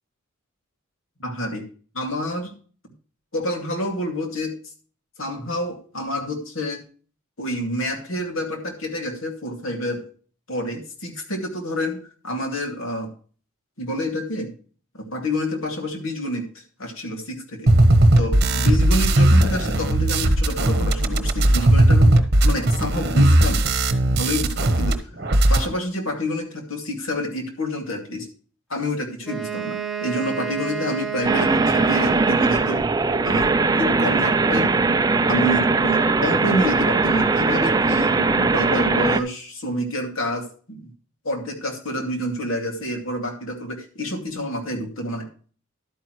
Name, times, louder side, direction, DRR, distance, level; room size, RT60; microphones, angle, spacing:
voice 1, 1.2-1.7 1.9-2.5 3.3-4.5 5.2-6.8 7.4-10.0 10.5-13.1 13.8-14.5 15.1-17.7 18.2-22.1 22.4-23.6 24.0-25.0 25.5-28.3 28.7-32.8 33.2-33.5 33.8-34.7 35.3-40.9 41.2-45.3, left 1 dB, 75° left, 3 dB, 2.4 m, -28 dB
sound 1, 17.7-24.9 25.2-25.7, right 1 dB, 50° right, 1.0 m, -17 dB
Wind instrument woodwind instrument, 29.2-32.9, right 8 dB, ahead, 1.3 m, -30 dB
sound 2, 31.2-39.2, right 3 dB, 15° right, 0.4 m, -20 dB
11.5 x 9.1 x 3.1 m, 0.40 s
head